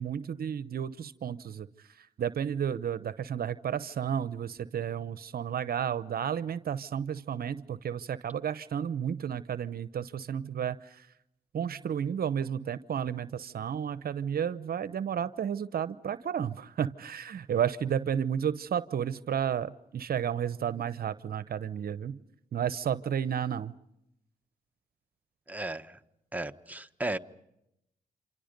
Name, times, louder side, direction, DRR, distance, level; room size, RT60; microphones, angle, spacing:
voice 1, 0.0-1.7 2.0-11.1 11.5-22.2 22.5-23.7, right 8 dB, 65° right, 15 dB, 0.8 m, -32 dB
voice 2, 25.5-26.0 26.3-27.2, right 2 dB, 10° right, 8 dB, 1.3 m, -35 dB
28.5 x 26.5 x 5.3 m, 0.83 s
supercardioid pair, 50°, 17 cm